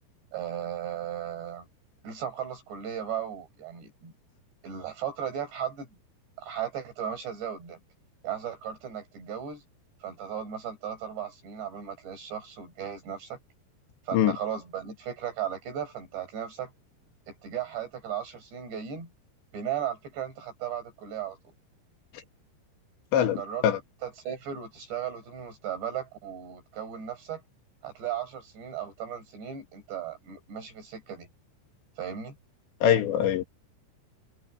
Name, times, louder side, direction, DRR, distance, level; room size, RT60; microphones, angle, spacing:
voice 1, 0.3-1.7 2.0-4.1 4.6-5.9 6.4-7.8 8.2-9.6 10.0-13.4 14.1-16.7 17.3-19.1 19.5-21.4 23.3-23.7 24.0-27.4 27.8-31.3 32.0-32.4, right 9 dB, 75° right, 8.3 m, -36 dB
voice 2, 23.1-23.8 32.8-33.4, left 10 dB, 85° left, 4.1 m, -23 dB
omnidirectional pair, 5.0 m